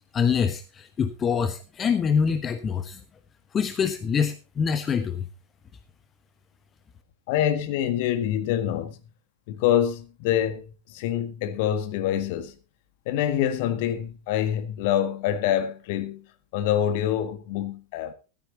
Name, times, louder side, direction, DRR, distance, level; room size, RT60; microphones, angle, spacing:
voice 1, 0.1-3.0 3.5-5.2, left 6 dB, 25° left, 1.1 m, -25 dB
voice 2, 7.3-9.0 9.5-12.5 13.0-16.2 16.5-18.1, left 10 dB, 50° left, 1.7 m, -26 dB
14.5 x 13.0 x 2.9 m
figure-of-eight pair, 90°, 0 cm